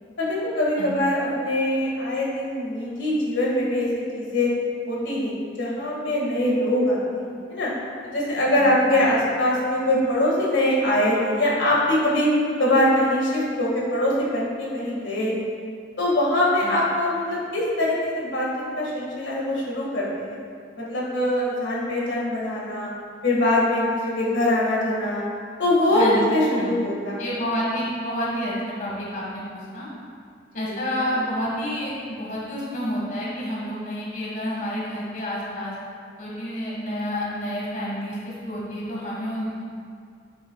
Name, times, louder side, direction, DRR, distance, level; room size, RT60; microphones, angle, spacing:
voice 1, 0.2-4.5 4.9-7.2 7.5-7.7 8.1-12.3 12.6-15.4 16.0-18.5 18.8-20.4 20.8-22.9 23.2-25.2 25.6-27.3 30.5-31.0, left 1 dB, 80° left, -5 dB, 1.8 m, -23 dB
voice 2, 8.6-9.1 16.6-16.8 25.9-26.2 26.6-26.9 27.2-29.9 30.5-35.8 36.2-39.6, equal, 45° left, -6 dB, 1.7 m, -29 dB
9.5 x 8.7 x 2.3 m, 2.3 s
head